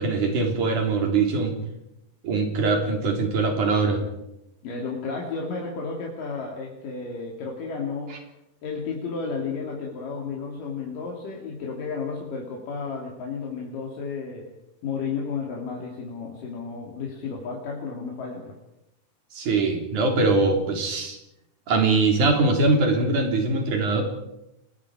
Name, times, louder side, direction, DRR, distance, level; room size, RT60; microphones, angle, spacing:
voice 1, 0.0-1.5 2.2-4.0 19.3-21.2 21.7-24.0, right 3 dB, 65° right, 3 dB, 4.9 m, -22 dB
voice 2, 4.6-8.2 8.6-14.5 14.8-18.6, left 5 dB, 80° left, -1 dB, 4.4 m, -32 dB
29.5 x 20.0 x 4.9 m, 0.85 s
omnidirectional pair, 3.8 m